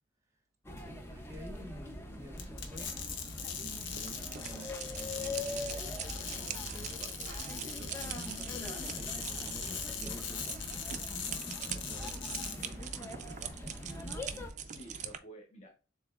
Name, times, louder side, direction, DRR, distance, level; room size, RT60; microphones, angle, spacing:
sound 1, 0.6-14.5, left 1 dB, 10° left, 0.6 m, -43 dB
voice 1, 0.7-2.9 3.6-7.3 7.6-10.7 11.6-12.1 12.5-13.1 13.4-13.9, right 1 dB, 15° right, 0.8 m, -51 dB
sound 2, 2.4-12.7, left 7 dB, 70° left, 0.8 m, -41 dB
sound 3, 3.9-15.2, right 8 dB, 40° right, 0.4 m, -44 dB
voice 2, 11.5-12.1 12.6-13.1 14.6-15.7, equal, 35° left, 1.0 m, -53 dB
7.1 x 3.0 x 2.3 m
head